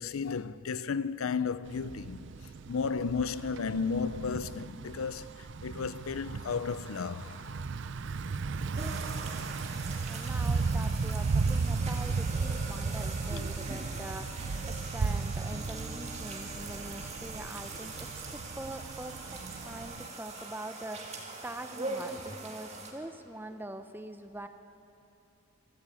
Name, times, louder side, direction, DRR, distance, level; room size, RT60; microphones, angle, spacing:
voice 1, 0.0-2.2 2.7-7.5, left 5 dB, 75° left, 0.5 m, -33 dB
Thunder / Bicycle, 1.7-20.1, right 4 dB, 55° right, 0.5 m, -35 dB
sound 1, 8.8-22.9, right 3 dB, 30° right, 2.1 m, -42 dB
voice 2, 10.1-24.5, right 1 dB, 10° right, 0.7 m, -44 dB
sound 2, 15.5-20.3, equal, 20° left, 2.1 m, -54 dB
24.0 x 13.0 x 8.5 m
head